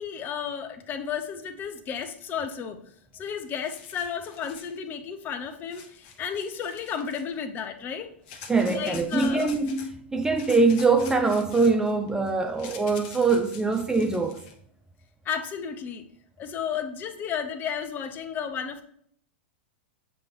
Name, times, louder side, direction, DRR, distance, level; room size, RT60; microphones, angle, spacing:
voice 1, 0.0-2.8 3.1-8.1 8.7-9.5 15.2-16.0 16.4-18.8, left 7 dB, 30° left, 0.7 m, -33 dB
sound 1, 3.1-3.2 3.5-4.8 5.7-7.4 8.3-9.9 10.4-14.5, left 6 dB, 50° left, 1.1 m, -46 dB
voice 2, 8.5-14.4, right 3 dB, 10° right, 0.5 m, -23 dB
7.2 x 3.1 x 4.6 m
hypercardioid pair, 115°, 6 cm